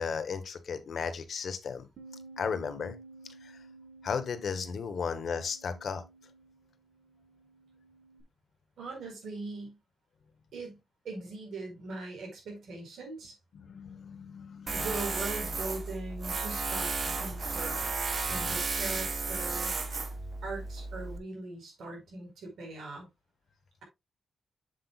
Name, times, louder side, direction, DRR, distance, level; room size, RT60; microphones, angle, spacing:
voice 1, 0.0-1.9 2.4-3.0 3.4-3.6 4.0-6.0 13.5-15.0, left 6 dB, 55° left, 1.0 m, -35 dB
Bass guitar, 2.0-8.2, right 3 dB, 65° right, 1.7 m, -53 dB
voice 2, 8.8-9.8 10.5-10.8 11.0-13.3 14.7-17.9 18.3-19.7 20.4-23.1, right 3 dB, 85° right, 4.4 m, -40 dB
Tools, 14.7-21.2, right 4 dB, 35° right, 0.9 m, -33 dB
7.8 x 7.6 x 2.3 m
wide cardioid pair, 175°, 0 cm